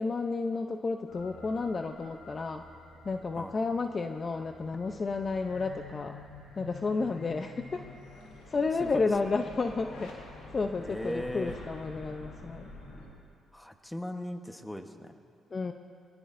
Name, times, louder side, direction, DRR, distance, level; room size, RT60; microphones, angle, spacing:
voice 1, 0.0-2.6 3.0-6.2 6.6-7.8 8.5-10.1 10.5-12.7 15.5-15.7, left 4 dB, 35° left, 6 dB, 0.6 m, -31 dB
sound 1, 1.1-13.1, left 3 dB, 90° left, 3.5 m, -48 dB
voice 2, 8.8-9.3 10.8-11.6 13.5-15.1, left 1 dB, 5° left, 6 dB, 1.1 m, -38 dB
24.0 x 18.0 x 2.6 m, 2.3 s
cardioid pair, 90°, 0 cm